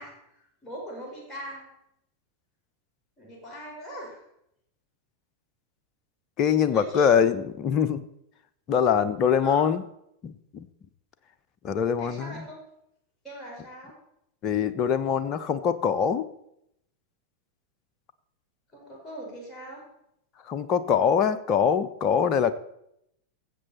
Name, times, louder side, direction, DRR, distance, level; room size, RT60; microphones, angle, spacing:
voice 1, 0.0-1.7 3.2-4.2 6.7-7.1 9.2-9.7 11.8-12.6 13.2-13.9 18.7-19.8, right 1 dB, 10° left, -4 dB, 4.9 m, -41 dB
voice 2, 6.4-8.0 8.7-9.8 10.2-10.7 11.6-12.4 14.4-16.3 20.5-22.5, left 7 dB, 35° left, 12 dB, 0.7 m, -23 dB
16.5 x 7.6 x 4.3 m, 0.79 s
figure-of-eight pair, 90°, 0 cm